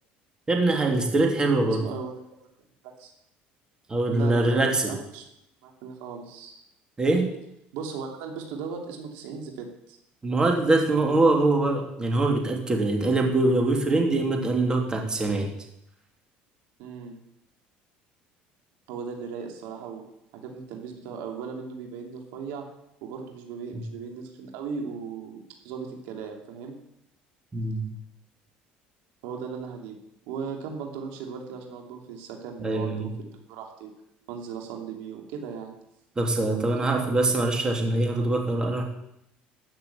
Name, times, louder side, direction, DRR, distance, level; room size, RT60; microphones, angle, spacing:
voice 1, 0.5-1.8 3.9-4.9 7.0-7.2 10.2-15.5 27.5-27.9 32.6-33.1 36.2-38.8, right 2 dB, 20° right, 1 dB, 2.9 m, -23 dB
voice 2, 1.6-2.1 2.8-3.1 4.1-5.2 5.6-6.6 7.7-10.0 16.8-17.2 18.9-20.0 20.3-22.7 23.0-25.4 25.6-26.8 29.2-30.0 30.3-33.9 34.3-35.7 36.8-37.3, right 6 dB, 85° right, 2 dB, 2.8 m, -37 dB
14.0 x 6.7 x 8.7 m, 0.81 s
cardioid pair, 115°, 4 cm